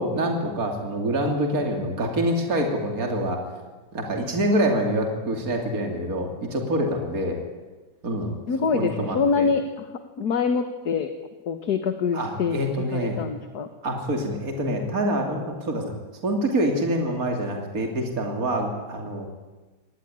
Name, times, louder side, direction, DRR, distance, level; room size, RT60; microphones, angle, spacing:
voice 1, 0.0-3.4 3.9-7.4 8.0-8.4 8.7-9.5 12.1-13.3 13.8-15.9 16.2-19.3, right 1 dB, 45° right, 2 dB, 3.4 m, -26 dB
voice 2, 8.5-9.9 10.2-11.1 11.5-13.7, left 5 dB, 60° left, 8 dB, 1.8 m, -25 dB
26.0 x 19.0 x 10.0 m, 1.2 s
omnidirectional pair, 2.1 m